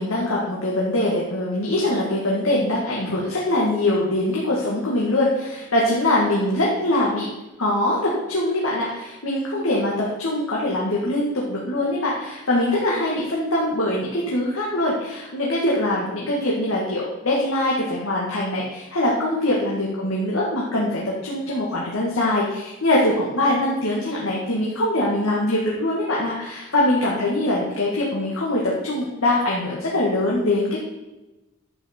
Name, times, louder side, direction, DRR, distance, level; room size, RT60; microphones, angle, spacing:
voice 1, 0.0-7.3 7.6-30.8, left 1 dB, 85° left, -5 dB, 1.9 m, -23 dB
11.0 x 8.0 x 4.5 m, 1.0 s
head